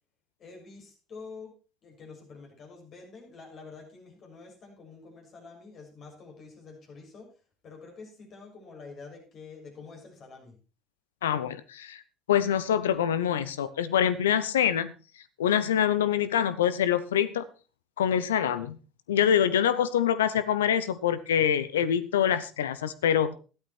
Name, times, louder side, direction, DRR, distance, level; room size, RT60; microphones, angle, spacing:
voice 1, 0.4-1.5 1.8-7.3 7.6-10.6, left 4 dB, 50° left, 1 dB, 6.8 m, -47 dB
voice 2, 11.2-12.0 12.3-14.9 15.4-17.5 18.0-18.8 19.1-23.3, left 9 dB, 85° left, 15 dB, 0.8 m, -25 dB
13.0 x 12.0 x 4.4 m, 0.35 s
hypercardioid pair, 65°, 0 cm